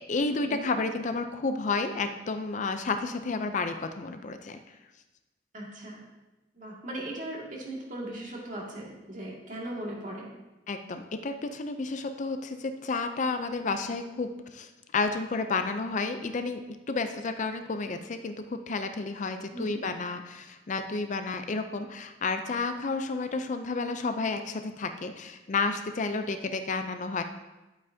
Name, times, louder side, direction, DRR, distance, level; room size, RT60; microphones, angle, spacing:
voice 1, 0.0-4.6 10.7-27.2, left 3 dB, 40° left, 8 dB, 0.4 m, -31 dB
voice 2, 5.5-6.0 6.5-10.3 19.5-19.8, right 1 dB, 45° right, -3 dB, 2.1 m, -38 dB
11.0 x 8.4 x 2.7 m, 1.1 s
head